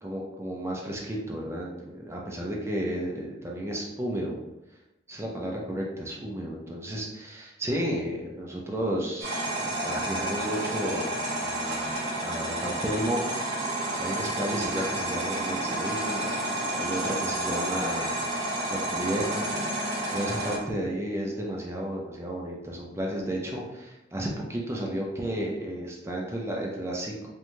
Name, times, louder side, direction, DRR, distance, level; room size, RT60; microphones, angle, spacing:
voice 1, 0.0-4.4 5.1-11.9 12.2-13.3 14.0-16.3 16.7-19.5 20.1-27.2, right 1 dB, 15° right, -2 dB, 0.4 m, -32 dB
sound 1, 9.2-20.6, right 1 dB, 60° right, 0.7 m, -30 dB
3.0 x 2.2 x 2.6 m, 0.96 s
head